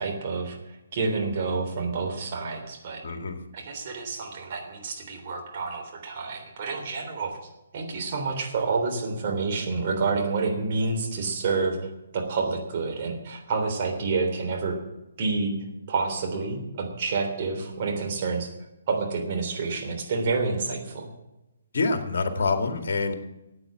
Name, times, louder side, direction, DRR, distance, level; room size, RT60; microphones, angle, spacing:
voice 1, 0.0-3.0 3.5-7.4 7.7-11.8 12.1-14.8 15.2-15.5 15.9-18.5 18.9-21.1, right 4 dB, 40° right, 2 dB, 3.4 m, -28 dB
voice 2, 3.0-3.4 21.7-23.1, left 3 dB, 55° left, 7 dB, 2.1 m, -26 dB
15.0 x 8.8 x 7.4 m, 0.96 s
figure-of-eight pair, 135°, 0 cm